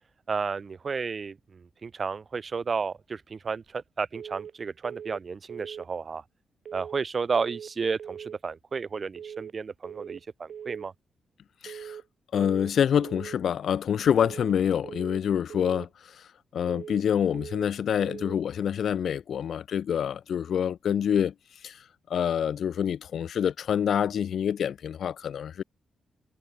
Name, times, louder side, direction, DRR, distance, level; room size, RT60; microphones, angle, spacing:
voice 1, 0.3-6.2 6.7-10.9, right 5 dB, 50° right, 4.9 m, -32 dB
sound 1, 4.2-4.6 4.8-5.2 5.5-5.9 6.7-7.1 7.3-7.7 8.0-8.4 9.2-9.6 9.8-10.2 10.5-10.9 11.7-12.1 12.3-12.7 13.0-13.4 14.2-14.6 14.8-15.2 15.5-15.9 16.7-17.1 17.3-17.7 18.0-18.4, right 8 dB, 70° right, 6.9 m, -41 dB
voice 2, 11.6-12.0 12.3-15.9 16.5-21.3 21.6-21.8 22.1-25.6, left 8 dB, 70° left, 1.6 m, -26 dB
cardioid pair, 60°, 0 cm